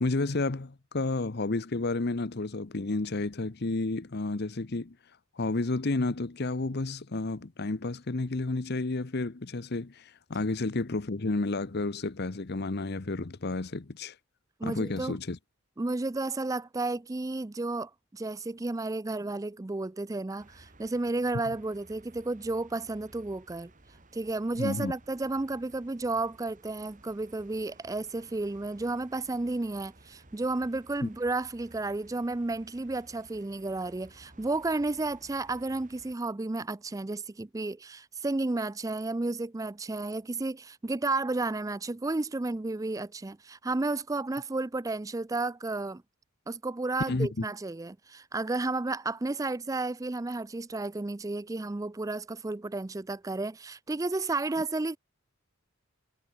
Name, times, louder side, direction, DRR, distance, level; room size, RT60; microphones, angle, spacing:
voice 1, 0.0-5.0 5.4-14.1 14.6-15.4 24.6-24.9 31.0-31.1 47.1-47.4, left 2 dB, 50° left, 0.9 m, -31 dB
voice 2, 14.6-15.2 15.8-23.7 24.1-46.0 46.5-55.0, right 2 dB, 15° right, 0.4 m, -32 dB
sound 1, 20.4-36.2, right 2 dB, 35° right, 2.9 m, -57 dB
head